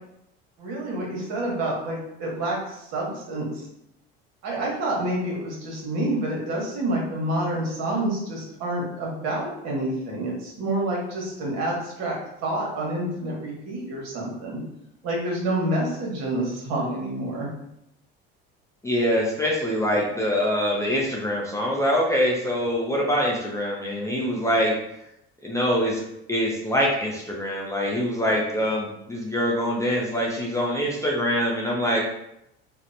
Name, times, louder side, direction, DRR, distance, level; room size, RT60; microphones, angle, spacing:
voice 1, 0.6-3.7 4.4-12.2 12.4-14.6 15.0-17.5, right 1 dB, 60° right, -2 dB, 1.1 m, -28 dB
voice 2, 18.8-24.8 25.4-26.0 26.3-32.0, equal, 10° left, -3 dB, 0.4 m, -24 dB
2.8 x 2.1 x 2.5 m, 0.80 s
supercardioid pair, 90°, 29 cm